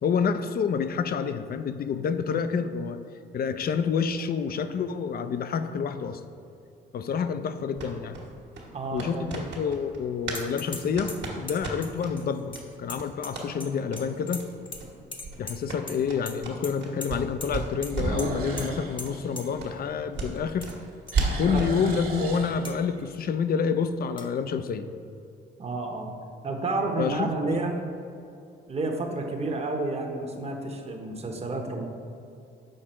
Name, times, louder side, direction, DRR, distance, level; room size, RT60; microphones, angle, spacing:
voice 1, 0.0-3.0 3.3-6.2 6.9-8.2 8.9-14.4 15.4-20.7 21.4-24.8 27.0-27.6, left 6 dB, 50° left, 11 dB, 0.5 m, -28 dB
sound 1, 4.2-4.9 5.5-5.6 10.9-11.3 11.8-11.9 12.4-12.5 12.8-12.9 14.4-14.5 17.8-20.4 20.7-23.1, right 2 dB, 45° right, 1.5 m, -37 dB
sound 2, 7.7-10.4 10.7-12.1 12.5-12.6 12.9-13.5 13.9-14.0 14.4-14.5 14.7-14.9 15.2-17.3 17.5-18.3 18.6-18.7 19.0-19.1 19.6-21.7, right 3 dB, 60° right, 1.5 m, -33 dB
voice 2, 8.7-9.4 21.3-21.6 25.6-26.1 26.4-27.8 28.7-31.8, right 3 dB, 30° right, 2 dB, 1.0 m, -30 dB
sound 3, 10.3-10.8 11.1-13.7 14.0-14.8 15.1-16.0 16.3-16.7 17.0-17.1 17.4-17.5 17.8-17.9 18.2-18.3 18.6-18.7 19.0-19.1 19.4-19.5 20.4-20.7 21.1-21.2 21.7-21.8 22.7-22.8 24.2-24.3, left 2 dB, 25° left, 0.8 m, -39 dB
6.5 x 4.9 x 4.3 m, 2.6 s
cardioid pair, 90°, 20 cm